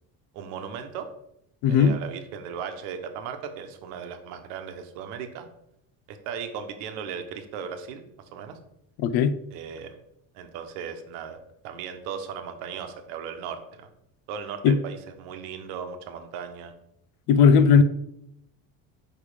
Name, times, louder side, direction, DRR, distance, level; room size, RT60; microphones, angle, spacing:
voice 1, 0.3-1.1 1.7-5.5 6.1-8.0 8.3-8.6 9.5-10.0 10.3-11.4 11.6-13.9 14.3-16.7, right 7 dB, 85° right, 1.1 m, -37 dB
voice 2, 1.6-2.0 9.0-9.4 14.6-14.8 17.3-17.8, left 6 dB, 70° left, 0.7 m, -17 dB
5.2 x 5.1 x 5.0 m
cardioid pair, 135°, 40 cm